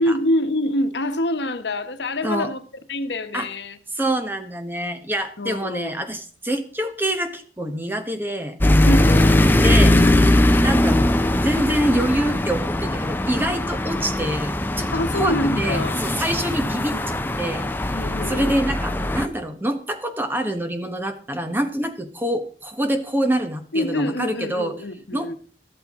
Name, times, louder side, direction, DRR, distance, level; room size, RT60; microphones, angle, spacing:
voice 1, 0.0-2.6 2.9-3.8 5.4-5.9 8.8-9.6 14.9-16.1 17.9-18.5 23.7-25.3, left 1 dB, 85° left, 1.1 m, -25 dB
voice 2, 3.9-8.6 9.6-10.0 10.6-18.0 18.3-24.7 25.1-25.3, right 1 dB, 10° right, 1.1 m, -26 dB
sound 1, 8.6-19.3, left 1 dB, 10° left, 0.6 m, -20 dB
13.0 x 12.5 x 3.6 m
head